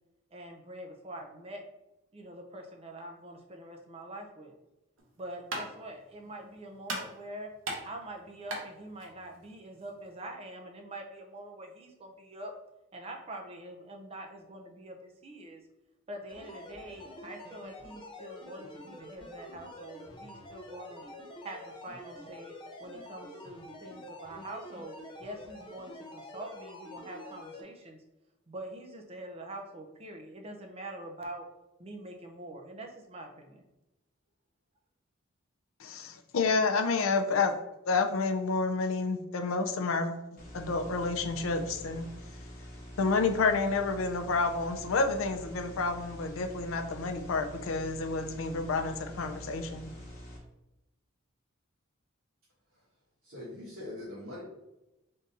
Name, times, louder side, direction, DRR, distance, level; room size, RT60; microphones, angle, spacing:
voice 1, 0.3-1.7 2.1-4.5 5.2-7.5 7.8-12.5 12.9-15.6 16.1-21.0 21.4-28.0 28.5-31.5 31.8-33.6, right 1 dB, 30° right, 2 dB, 0.5 m, -45 dB
sound 1, 5.0-10.3, right 2 dB, 65° right, 0.8 m, -41 dB
sound 2, 16.3-27.6, left 1 dB, 25° left, 0.5 m, -47 dB
voice 2, 35.8-37.5 37.9-40.1 40.5-42.1 43.0-49.9, left 4 dB, 75° left, 6 dB, 0.5 m, -29 dB
sound 3, 40.4-50.4, equal, 45° left, 1.0 m, -46 dB
voice 3, 53.3-54.4, left 1 dB, 85° right, -9 dB, 1.3 m, -42 dB
3.6 x 2.6 x 4.0 m, 0.95 s
head